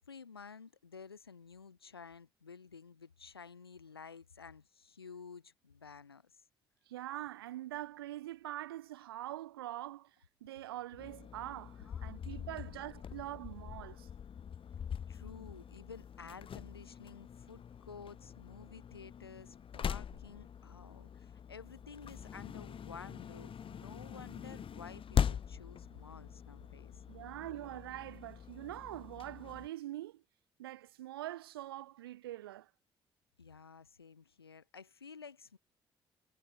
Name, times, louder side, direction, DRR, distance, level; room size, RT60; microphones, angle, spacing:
voice 1, 0.0-6.4 11.8-12.2 15.1-27.0 33.4-35.6, left 5 dB, 85° left, 0.8 m, -52 dB
voice 2, 6.9-10.1 10.4-14.1 27.1-30.2 30.6-32.7, right 14 dB, 75° right, 0.4 m, -44 dB
sound 1, 11.0-29.7, left 8 dB, 45° left, 2.1 m, -42 dB
figure-of-eight pair, 40°, 12 cm